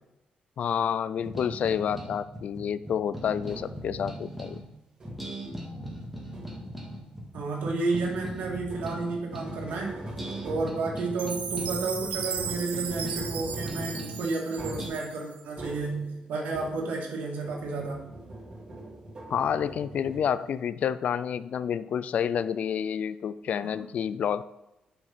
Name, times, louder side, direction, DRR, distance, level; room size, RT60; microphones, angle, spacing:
voice 1, 0.6-4.6 19.3-24.4, left 8 dB, 60° left, 15 dB, 0.3 m, -29 dB
sound 1, 1.2-4.6 5.0-9.7 10.0-14.3 14.6-14.9, equal, 5° right, 2.1 m, -39 dB
sound 2, 3.5-4.0 5.0-5.5 6.3-6.9 8.6-17.1 17.4-20.6, right 1 dB, 30° right, 3.2 m, -43 dB
voice 2, 7.3-9.9 10.4-18.0 23.6-23.7, right 3 dB, 90° right, -1 dB, 2.1 m, -31 dB
Chime, 11.2-15.4, right 7 dB, 70° right, 1.0 m, -36 dB
7.0 x 5.1 x 5.7 m, 0.95 s
cardioid pair, 100°, 3 cm